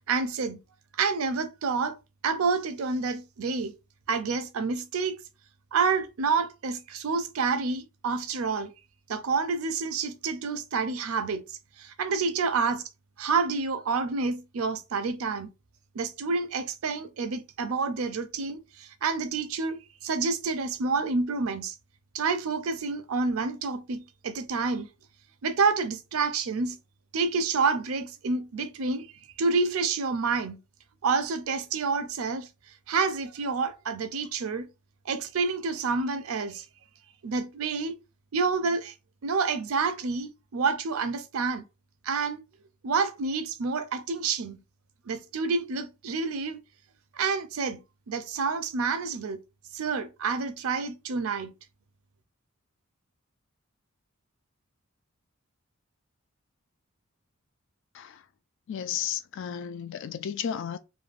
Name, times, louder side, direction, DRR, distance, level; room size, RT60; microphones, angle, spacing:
voice 1, 0.1-0.6 1.0-2.0 2.2-3.7 4.1-5.2 5.7-8.7 9.1-11.4 11.8-12.8 13.2-15.5 15.9-21.7 22.1-24.9 25.4-26.8 27.1-29.1 29.4-30.6 31.0-32.5 32.9-34.7 35.1-36.6 37.2-38.0 38.3-38.9 39.2-41.6 42.0-42.4 42.8-44.6 45.1-46.6 47.1-49.4 49.7-51.5, right 4 dB, 70° right, 0.5 m, -28 dB
voice 2, 58.7-60.8, left 9 dB, 60° left, 0.3 m, -33 dB
3.2 x 2.2 x 2.4 m
head